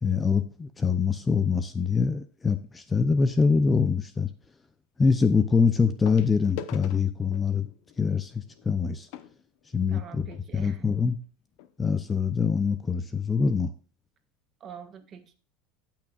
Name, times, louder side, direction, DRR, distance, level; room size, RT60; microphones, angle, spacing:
voice 1, 0.0-4.3 5.0-7.7 8.0-9.1 9.7-10.3 10.5-11.2 11.8-13.7, left 5 dB, 15° left, 10 dB, 0.6 m, -24 dB
sound 1, 2.5-2.8 4.4-4.5 6.0-10.5 11.2-11.3 11.5-11.7 12.2-12.3, left 10 dB, 65° left, 0.9 m, -44 dB
voice 2, 9.9-10.8 14.6-15.3, right 7 dB, 30° right, 6 dB, 1.5 m, -44 dB
17.0 x 6.0 x 2.4 m, 0.39 s
supercardioid pair, 145°, 0 cm